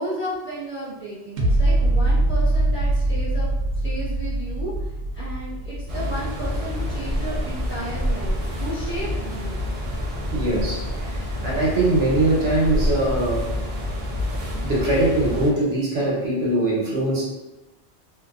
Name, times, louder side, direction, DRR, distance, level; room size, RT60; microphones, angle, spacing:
voice 1, 0.0-3.5 3.8-9.6, right 1 dB, 10° left, -10 dB, 0.9 m, -33 dB
sound 1, 1.4-8.4 8.9-9.0, right 1 dB, 80° right, 0.9 m, -23 dB
sound 2, 5.9-15.5, left 1 dB, 45° right, 0.5 m, -27 dB
voice 2, 10.3-13.6 14.5-17.2, right 2 dB, 65° right, -5 dB, 1.1 m, -22 dB
2.7 x 2.3 x 2.3 m, 0.98 s
omnidirectional pair, 1.2 m